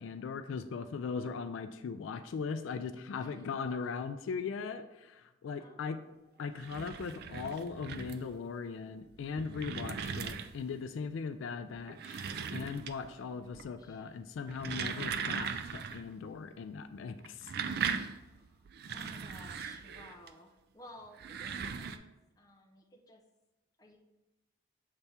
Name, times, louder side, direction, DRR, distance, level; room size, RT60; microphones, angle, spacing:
voice 1, 0.0-6.0 6.4-12.3 12.5-17.5, left 5 dB, 70° left, 10 dB, 0.3 m, -39 dB
voice 2, 3.1-3.8 5.6-6.6 13.2-14.1 18.1-18.6 18.9-23.2 23.8-24.0, left 1 dB, 20° left, 1 dB, 0.6 m, -56 dB
sound 1, 6.4-8.4 9.1-10.8 11.8-13.2 13.5-13.9 14.4-16.1 16.3-16.4 17.2-20.3 21.1-22.0, right 6 dB, 50° right, 0.3 m, -39 dB
6.8 x 3.4 x 4.2 m, 1.0 s
head